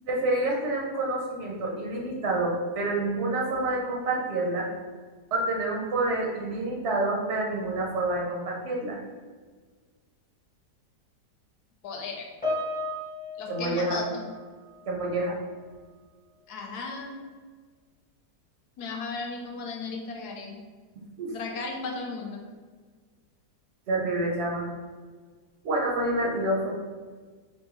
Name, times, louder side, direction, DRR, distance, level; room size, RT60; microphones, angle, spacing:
voice 1, 0.1-4.7 5.3-9.0 13.5-14.0 14.9-15.4 21.2-21.3 23.9-24.7 25.6-26.7, right 2 dB, 65° right, -2 dB, 0.6 m, -28 dB
voice 2, 11.8-12.3 13.4-14.2 16.5-17.3 18.8-20.6 21.3-22.5, left 4 dB, 70° left, 1 dB, 1.1 m, -35 dB
Piano, 12.4-15.1 15.3-15.7 16.4-16.6, left 2 dB, 10° left, 0.5 m, -35 dB
5.7 x 2.1 x 3.0 m, 1.5 s
omnidirectional pair, 1.9 m